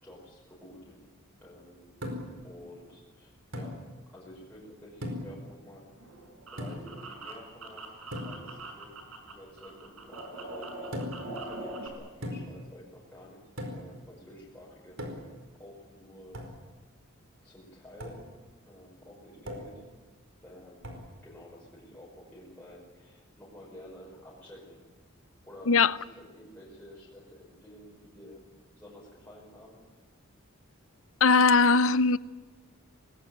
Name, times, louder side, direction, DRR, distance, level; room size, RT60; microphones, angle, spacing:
voice 1, 0.0-1.0 1.4-1.9 2.4-3.8 4.1-5.9 6.5-13.4 13.7-15.0 15.5-16.5 17.4-18.3 18.7-19.8 20.4-24.8 25.4-28.4 28.8-29.8, left 1 dB, 5° left, 5.6 m, -51 dB
sound 1, 2.0-2.4 3.5-3.8 5.0-5.4 6.6-7.0 8.1-8.4 10.9-11.3 12.2-12.6 13.6-13.9 15.0-15.4 16.3-16.6 18.0-18.2 19.4-19.8 20.8-21.1, left 1 dB, 60° right, 4.8 m, -38 dB
sound 2, 6.0-9.3 9.6-11.9, right 2 dB, 85° right, 5.9 m, -42 dB
voice 2, 31.2-32.2, left 4 dB, 70° left, 0.7 m, -20 dB
25.0 x 20.0 x 9.3 m
head